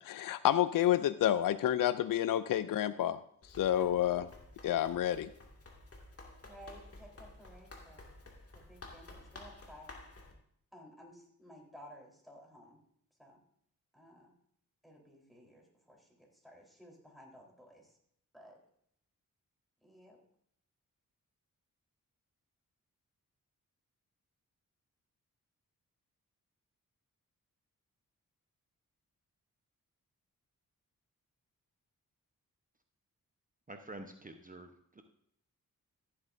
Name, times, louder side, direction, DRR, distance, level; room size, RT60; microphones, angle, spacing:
voice 1, 0.0-3.2 3.5-4.3 4.6-5.3, left 11 dB, 70° left, 14 dB, 0.5 m, -29 dB
Run, 3.4-10.3, left 2 dB, 40° left, 2.2 m, -53 dB
voice 2, 6.4-8.1 8.5-10.0 10.7-12.8 13.2-13.4 13.9-14.3 14.8-18.0 18.3-18.6 19.8-20.2, equal, ahead, -2 dB, 3.8 m, -56 dB
voice 3, 33.7-35.0, right 2 dB, 25° right, 6 dB, 0.9 m, -48 dB
14.5 x 7.8 x 2.6 m, 0.70 s
cardioid pair, 55°, 35 cm